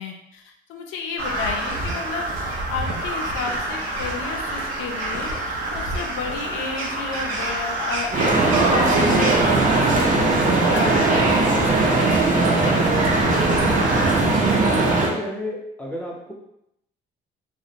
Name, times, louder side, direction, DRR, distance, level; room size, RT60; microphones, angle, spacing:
voice 1, 0.0-9.4 9.7-13.2 13.6-13.7, left 4 dB, 85° left, 2 dB, 0.4 m, -32 dB
Crow, 1.2-14.3, right 1 dB, 90° right, 0.6 m, -29 dB
sound 1, 8.1-15.1, right 3 dB, 40° right, 0.5 m, -19 dB
voice 2, 14.9-16.3, left 1 dB, 5° left, -2 dB, 0.6 m, -32 dB
2.4 x 2.1 x 2.7 m, 0.78 s
cardioid pair, 90°, 20 cm